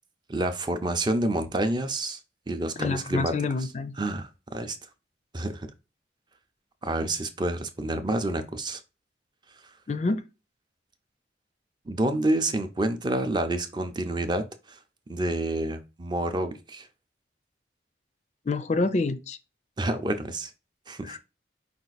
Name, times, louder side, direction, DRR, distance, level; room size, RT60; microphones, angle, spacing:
voice 1, 0.3-2.2 2.5-3.3 4.0-4.8 5.3-5.7 6.8-8.8 11.9-14.5 15.1-16.9 19.8-20.5 20.9-21.2, right 1 dB, 25° right, 0.5 m, -28 dB
voice 2, 2.8-4.0 9.9-10.2 18.5-19.4 21.0-21.2, left 3 dB, 40° left, 0.4 m, -27 dB
5.1 x 2.5 x 4.0 m
head